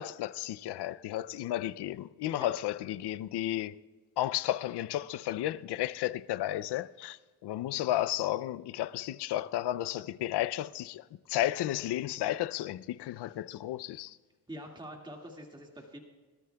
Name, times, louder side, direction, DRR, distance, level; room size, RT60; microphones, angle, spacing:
voice 1, 0.0-3.8 4.2-14.2, left 13 dB, 80° left, 0.5 m, -33 dB
voice 2, 14.5-16.0, equal, 10° right, 2.0 m, -45 dB
23.0 x 13.0 x 2.3 m
cardioid pair, 65°, 39 cm